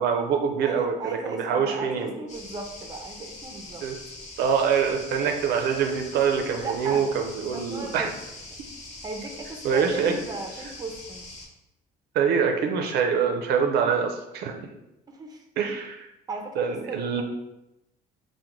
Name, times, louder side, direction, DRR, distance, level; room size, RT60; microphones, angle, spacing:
voice 1, 0.0-2.1 3.8-3.9 4.4-8.1 9.6-10.2 12.1-14.7 15.6-16.1 16.6-17.2, right 6 dB, 75° right, 4 dB, 0.4 m, -25 dB
voice 2, 0.6-3.8 6.6-7.1 7.5-8.1 9.0-11.3 15.1-15.4 16.3-17.2, right 3 dB, 25° right, 3 dB, 0.5 m, -36 dB
sound 1, 2.3-11.5, left 2 dB, 45° left, 0.9 m, -43 dB
3.5 x 2.1 x 3.0 m, 0.91 s
cardioid pair, 110°, 17 cm